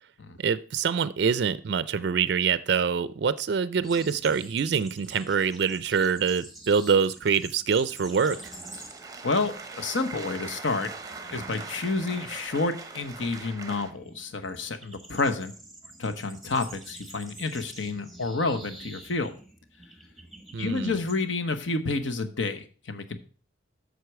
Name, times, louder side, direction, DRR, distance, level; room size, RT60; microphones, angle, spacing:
voice 1, 0.4-8.4 20.5-21.0, right 6 dB, 60° right, 16 dB, 0.4 m, -25 dB
sound 1, 3.8-9.2 9.5-9.8 10.2-21.2, right 2 dB, ahead, 1.2 m, -47 dB
sound 2, 8.1-13.9, right 4 dB, 20° right, 0.7 m, -41 dB
voice 2, 9.2-10.9 11.3-15.5 16.0-19.4 20.6-23.2, left 3 dB, 75° left, 8 dB, 1.0 m, -29 dB
8.0 x 6.7 x 4.6 m, 0.40 s
head